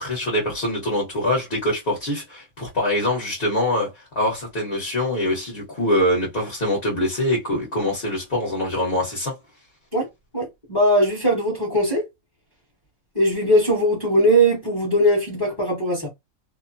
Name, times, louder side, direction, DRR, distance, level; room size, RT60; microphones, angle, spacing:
voice 1, 0.0-9.4, left 1 dB, 40° left, 1.1 m, -24 dB
voice 2, 10.3-12.1 13.1-16.1, equal, 15° left, 1.0 m, -20 dB
2.8 x 2.1 x 2.5 m
omnidirectional pair, 1.7 m